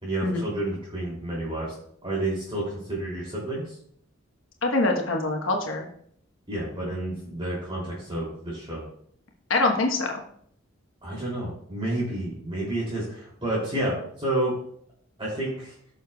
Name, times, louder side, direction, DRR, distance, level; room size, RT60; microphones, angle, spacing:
voice 1, 0.0-1.7 2.0-3.6 6.5-8.8 11.0-14.5 15.2-15.7, right 1 dB, 25° right, -6 dB, 2.9 m, -30 dB
voice 2, 4.6-5.9 9.5-10.1, left 2 dB, 70° left, 1 dB, 1.2 m, -24 dB
15.5 x 6.5 x 2.3 m, 0.64 s
head